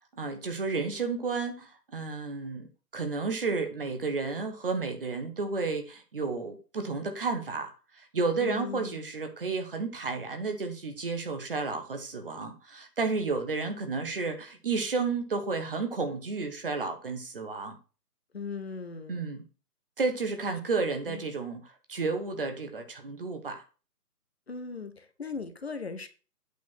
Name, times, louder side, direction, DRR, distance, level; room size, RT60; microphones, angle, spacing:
voice 1, 0.1-17.8 19.1-19.4 20.0-23.6, right 4 dB, 35° right, 6 dB, 1.2 m, -32 dB
voice 2, 8.4-9.0 18.3-19.3 21.1-21.2 24.5-26.1, left 4 dB, 40° left, 9 dB, 0.9 m, -38 dB
8.4 x 4.5 x 6.0 m, 0.34 s
figure-of-eight pair, 145°, 47 cm